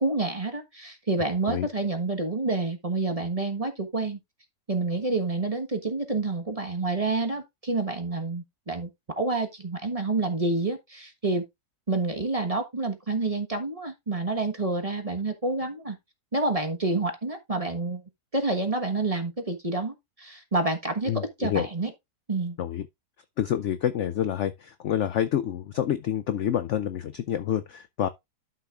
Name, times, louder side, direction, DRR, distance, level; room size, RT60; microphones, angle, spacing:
voice 1, 0.0-4.2 4.7-8.9 9.2-11.4 11.9-16.0 16.3-18.0 18.3-21.9 22.3-22.6, right 3 dB, 25° right, 1.2 m, -28 dB
voice 2, 21.1-21.7 22.6-22.8 23.4-28.1, left 10 dB, 70° left, 0.7 m, -28 dB
12.0 x 6.5 x 2.4 m
omnidirectional pair, 1.8 m